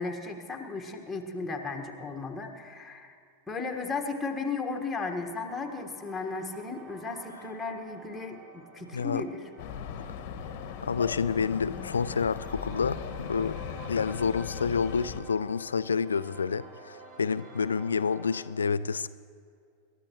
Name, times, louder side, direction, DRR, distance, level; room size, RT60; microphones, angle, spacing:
voice 1, 0.0-3.1 3.5-9.5, left 4 dB, 10° left, 2 dB, 1.6 m, -35 dB
sound 1, 4.9-18.5, right 2 dB, 35° right, 2.0 m, -50 dB
voice 2, 8.9-9.2 10.8-13.5 13.9-19.1, left 5 dB, 70° left, 16 dB, 0.4 m, -29 dB
sound 2, 9.6-15.2, left 8 dB, 45° left, 1.1 m, -38 dB
27.5 x 13.0 x 3.1 m, 2.3 s
figure-of-eight pair, 90°, 0 cm